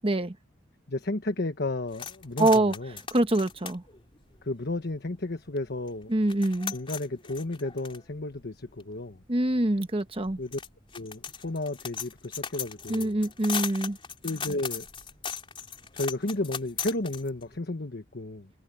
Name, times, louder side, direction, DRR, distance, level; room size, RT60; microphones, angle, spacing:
voice 1, 0.0-0.3 2.4-2.7 3.1-3.8 6.1-6.7 9.3-10.4 12.9-14.0, right 1 dB, 30° right, 1.2 m, -25 dB
voice 2, 0.9-3.0 4.4-6.1 6.7-9.2 10.4-10.6 10.9-13.2 14.2-14.9 15.9-18.5, left 2 dB, 60° left, 1.3 m, -33 dB
sound 1, 1.9-5.1 5.6-5.7 5.9-17.6, left 7 dB, 30° left, 3.6 m, -39 dB
head